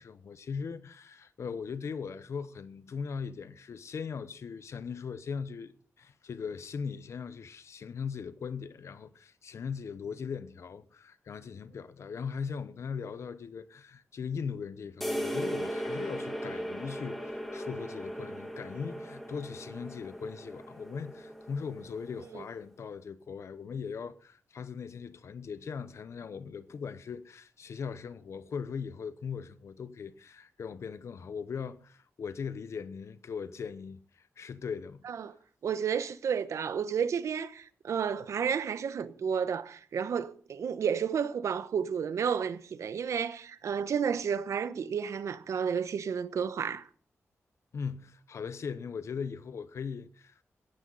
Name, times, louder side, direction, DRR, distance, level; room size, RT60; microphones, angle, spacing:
voice 1, 0.0-35.0 47.7-50.4, left 6 dB, 70° left, 1.0 m, -39 dB
sound 1, 15.0-22.5, equal, 5° left, 2.4 m, -38 dB
voice 2, 35.6-46.9, right 7 dB, 90° right, 1.0 m, -31 dB
17.0 x 14.5 x 4.1 m
wide cardioid pair, 130°, 5 cm